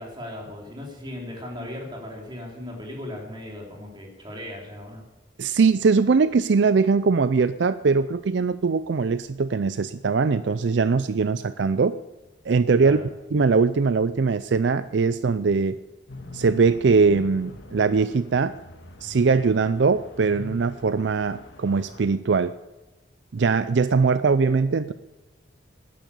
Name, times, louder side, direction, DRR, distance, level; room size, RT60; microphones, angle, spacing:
voice 1, 0.0-5.0 12.8-13.0, left 1 dB, 25° right, -1 dB, 3.6 m, -37 dB
voice 2, 5.4-12.0 12.4-13.0 13.3-15.8 16.3-18.5 19.0-22.5 23.3-24.9, right 4 dB, 65° right, 14 dB, 0.4 m, -21 dB
sound 1, 16.1-22.1, left 1 dB, 65° left, 1.8 m, -43 dB
12.5 x 10.5 x 8.4 m, 1.1 s
head